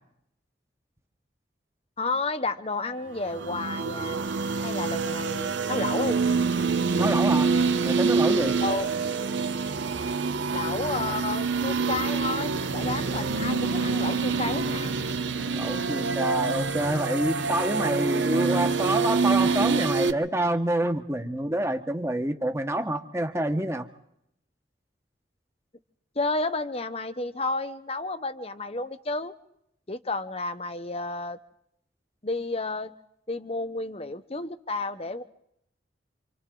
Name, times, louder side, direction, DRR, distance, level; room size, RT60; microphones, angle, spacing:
voice 1, 2.0-4.2 4.6-6.2 8.6-8.9 10.5-14.9 26.1-29.3 29.9-31.4 32.2-32.9 33.3-35.2, left 3 dB, 35° left, 11 dB, 1.0 m, -31 dB
sound 1, 3.2-20.1, right 4 dB, 80° right, 1.0 m, -26 dB
voice 2, 7.0-7.5 7.8-8.6 15.5-23.9, right 1 dB, 15° right, 7 dB, 1.3 m, -27 dB
28.0 x 26.5 x 3.9 m, 0.76 s
head